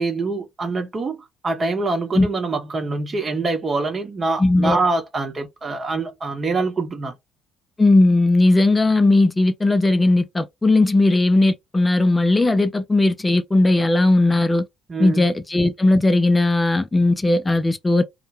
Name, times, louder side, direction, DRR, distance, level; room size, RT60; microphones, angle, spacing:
voice 1, 0.0-7.1 14.9-15.3, right 3 dB, 35° right, 0.9 m, -25 dB
voice 2, 4.4-4.8 7.8-14.6 15.0-18.0, left 2 dB, 20° left, 0.4 m, -17 dB
2.2 x 2.1 x 3.1 m
figure-of-eight pair, 50°, 0 cm